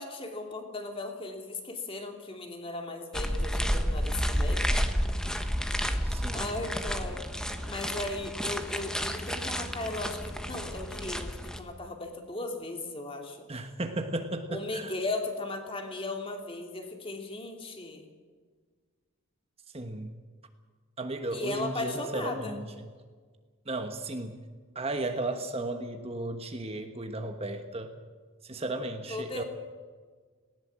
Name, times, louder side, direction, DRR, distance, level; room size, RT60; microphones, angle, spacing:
voice 1, 0.0-4.7 6.3-13.5 14.5-18.1 21.3-22.6 29.1-29.4, left 2 dB, 25° left, 3 dB, 2.8 m, -37 dB
sound 1, 3.1-11.6, equal, 5° left, 1.3 m, -31 dB
voice 2, 6.0-6.4 13.5-14.9 19.7-20.1 21.0-22.7 23.7-24.4 24.7-27.9 28.4-29.4, right 2 dB, 25° right, 6 dB, 1.2 m, -34 dB
19.5 x 18.0 x 7.5 m, 1.5 s
head